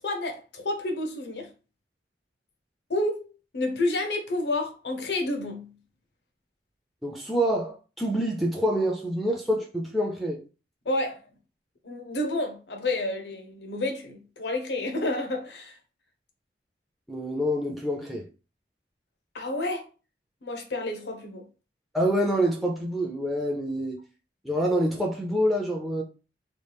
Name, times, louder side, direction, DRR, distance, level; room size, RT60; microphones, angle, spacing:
voice 1, 0.0-1.5 2.9-3.3 3.5-5.8 10.8-11.2 11.8-15.8 19.3-19.9 20.4-21.5, left 2 dB, 75° left, 0.7 m, -30 dB
voice 2, 7.0-10.4 17.1-18.3 21.9-24.0 24.4-26.0, equal, ahead, 0.4 m, -26 dB
3.1 x 2.4 x 3.3 m
head